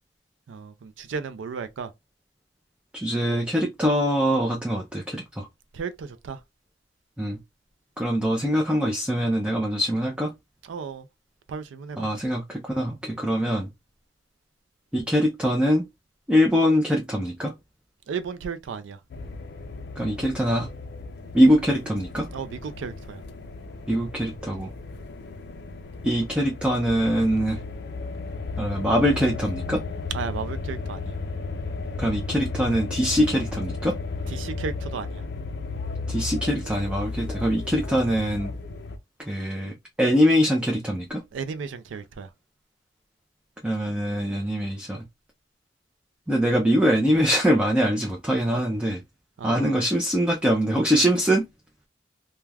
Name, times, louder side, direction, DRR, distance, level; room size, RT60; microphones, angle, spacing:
voice 1, 0.5-1.9 5.7-6.4 10.7-11.0 11.5-12.1 13.3-13.4 18.1-19.0 22.3-23.2 30.1-31.2 34.3-35.2 41.3-42.3 49.4-49.8, right 5 dB, 80° right, 0.4 m, -34 dB
voice 2, 2.9-5.5 7.2-7.4 8.0-10.3 12.0-13.7 14.9-15.8 16.3-17.5 20.0-20.7 21.3-22.3 23.9-24.7 26.0-27.6 28.6-29.8 32.0-33.9 36.1-38.5 39.3-41.2 43.6-45.0 46.3-49.0 49.4-51.4, equal, 5° right, 0.4 m, -23 dB
sound 1, 19.1-39.0, left 3 dB, 60° left, 0.4 m, -34 dB
2.3 x 2.2 x 3.2 m
head